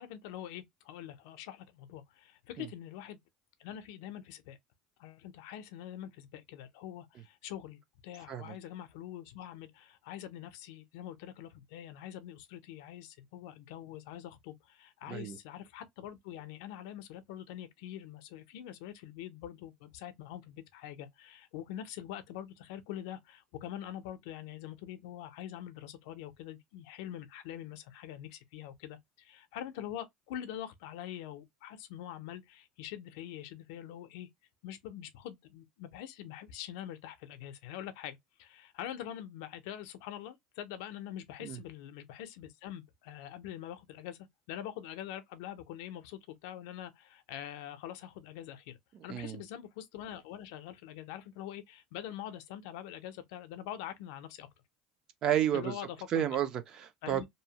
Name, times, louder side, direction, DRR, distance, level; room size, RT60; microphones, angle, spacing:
voice 1, 0.0-3.2 3.6-4.6 5.0-34.3 34.6-44.2 44.5-48.8 49.0-54.5 55.5-56.2 57.0-57.3, left 11 dB, 75° left, 0.5 m, -44 dB
voice 2, 15.1-15.4 41.4-41.6 49.1-49.4 55.2-55.8 56.1-57.2, right 10 dB, 30° right, 0.3 m, -31 dB
2.7 x 2.0 x 2.8 m
cardioid pair, 180°, 2 cm